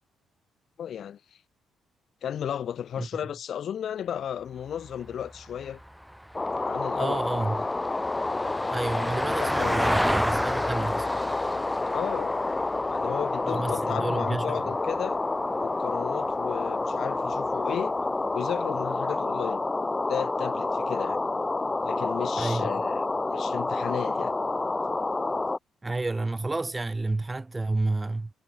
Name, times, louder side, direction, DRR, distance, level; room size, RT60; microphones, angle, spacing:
voice 1, 0.8-1.2 2.2-5.8 6.6-7.2 9.3-10.0 11.9-12.3 12.9-15.2 15.6-17.9 18.3-19.6 20.1-21.2 21.8-23.0 23.3-24.3, left 9 dB, 60° left, 3.9 m, -34 dB
Vehicle, 4.6-15.0 17.3-17.4, equal, ahead, 2.8 m, -33 dB
sound 1, 6.3-25.6, left 2 dB, 20° left, 0.7 m, -29 dB
voice 2, 7.0-7.7 8.7-11.1 13.5-14.8 22.4-22.7 25.8-28.3, right 2 dB, 20° right, 2.4 m, -30 dB
cardioid pair, 90°, 0 cm